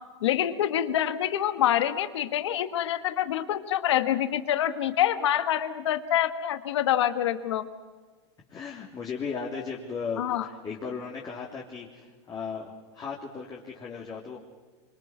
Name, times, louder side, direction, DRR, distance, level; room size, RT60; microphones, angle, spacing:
voice 1, 0.2-7.7 10.2-10.4, left 11 dB, 80° left, 10 dB, 1.5 m, -26 dB
voice 2, 8.5-14.4, left 5 dB, 30° left, -2 dB, 3.4 m, -36 dB
26.0 x 25.5 x 6.2 m, 1.3 s
hypercardioid pair, 110°, 15 cm